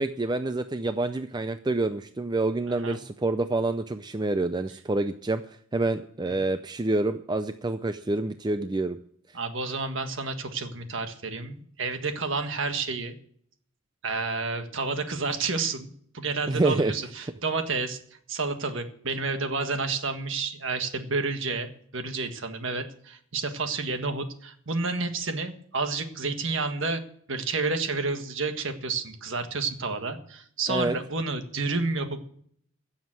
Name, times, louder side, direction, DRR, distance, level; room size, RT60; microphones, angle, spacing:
voice 1, 0.0-5.4 5.7-9.0 16.5-16.9 30.7-30.9, right 2 dB, 20° right, 10 dB, 0.4 m, -27 dB
voice 2, 2.7-3.0 6.3-6.4 9.3-13.2 14.0-18.0 18.3-27.0 27.3-32.3, right 3 dB, 60° right, 7 dB, 1.6 m, -30 dB
15.5 x 7.3 x 7.6 m, 0.62 s
head